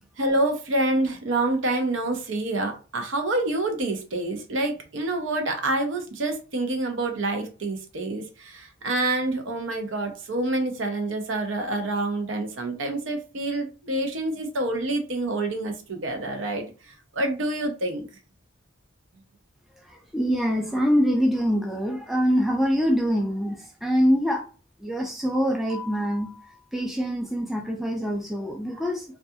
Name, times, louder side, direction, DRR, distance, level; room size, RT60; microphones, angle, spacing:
voice 1, 0.2-16.6 17.1-18.1, right 2 dB, 70° right, 5 dB, 0.6 m, -27 dB
voice 2, 20.1-24.4 24.8-26.4 26.7-29.0, equal, ahead, 1 dB, 0.4 m, -24 dB
2.3 x 2.3 x 2.7 m, 0.35 s
head